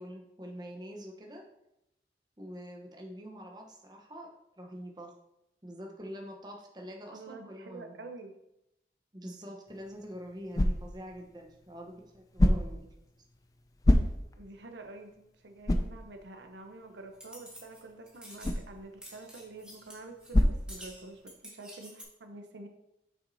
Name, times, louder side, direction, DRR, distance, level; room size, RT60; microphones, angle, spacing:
voice 1, 0.0-1.4 2.4-4.3 4.6-5.1 5.6-7.9 9.1-12.9, equal, 25° right, 0 dB, 0.9 m, -45 dB
voice 2, 7.1-8.3 14.4-22.7, right 2 dB, 85° right, 4 dB, 0.8 m, -47 dB
sound 1, 9.7-21.4, left 1 dB, 20° left, 0.4 m, -31 dB
sound 2, 17.1-17.8 18.1-18.6 19.0-20.4 20.7-22.0, equal, 5° right, 1.3 m, -49 dB
7.3 x 5.9 x 2.7 m, 0.86 s
head